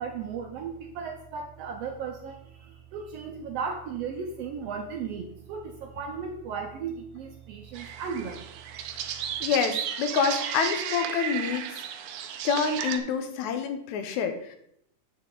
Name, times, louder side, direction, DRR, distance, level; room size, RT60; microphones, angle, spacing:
voice 1, 0.0-8.5, right 6 dB, 75° right, 4 dB, 1.5 m, -36 dB
sound 1, 7.7-13.0, right 9 dB, 90° right, 1.2 m, -34 dB
voice 2, 9.4-11.7 12.4-14.6, left 6 dB, 80° left, 7 dB, 2.2 m, -27 dB
8.1 x 6.5 x 3.8 m, 0.72 s
omnidirectional pair, 3.4 m